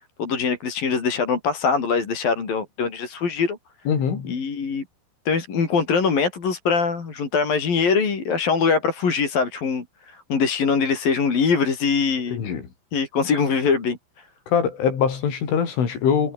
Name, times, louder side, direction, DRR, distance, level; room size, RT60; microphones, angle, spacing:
voice 1, 0.2-3.6 4.3-4.8 5.3-12.4 12.9-14.0, left 5 dB, 50° left, 6.1 m, -22 dB
voice 2, 3.9-4.4 12.3-12.6 14.5-16.3, left 7 dB, 80° left, 7.1 m, -23 dB
omnidirectional pair, 5.5 m